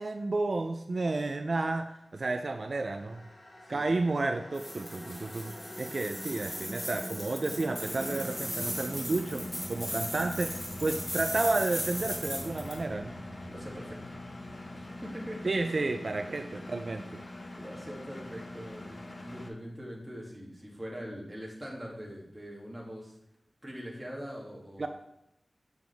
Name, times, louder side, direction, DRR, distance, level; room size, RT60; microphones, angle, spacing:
voice 1, 0.0-3.3 3.7-13.2 15.4-17.2 24.8-24.9, right 3 dB, 60° right, 6 dB, 0.4 m, -31 dB
sound 1, 2.1-17.3, equal, 85° left, 2.7 m, -45 dB
voice 2, 3.6-4.0 13.5-14.2 14.7-15.4 16.2-16.7 17.2-23.2 23.6-24.9, equal, 10° right, -3 dB, 2.4 m, -43 dB
sound 2, 4.6-12.8, equal, 15° left, 2.3 m, -38 dB
Engine, 7.8-19.5, left 2 dB, 35° left, 1.0 m, -44 dB
7.7 x 7.0 x 3.5 m, 0.84 s
wide cardioid pair, 75°, 0 cm